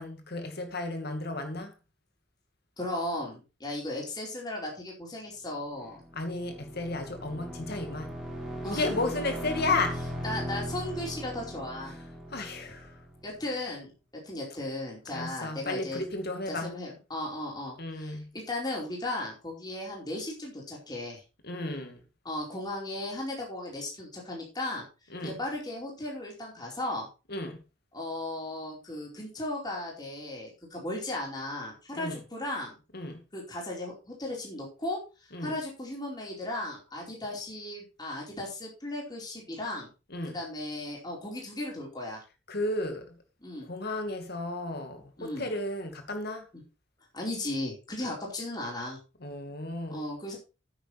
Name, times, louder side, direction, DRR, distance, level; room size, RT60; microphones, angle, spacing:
voice 1, 0.0-1.7 6.1-8.1 8.6-10.0 11.8-13.0 15.1-16.8 17.8-18.3 21.4-22.0 25.1-25.4 27.3-27.6 31.9-32.3 32.9-33.2 35.3-35.6 40.1-40.4 42.5-43.2 43.6-46.5 49.2-50.0, left 2 dB, 60° left, 2.4 m, -33 dB
voice 2, 2.8-6.0 8.6-8.8 10.2-11.9 13.2-13.9 14.2-16.0 16.5-21.2 22.2-24.8 25.2-27.1 27.9-32.8 33.3-39.9 40.3-42.2 43.4-43.7 45.2-45.5 47.1-49.0 49.9-50.4, left 1 dB, 20° left, 4.5 m, -36 dB
sound 1, 5.8-13.5, equal, 5° right, 3.6 m, -38 dB
9.6 x 9.0 x 4.2 m
head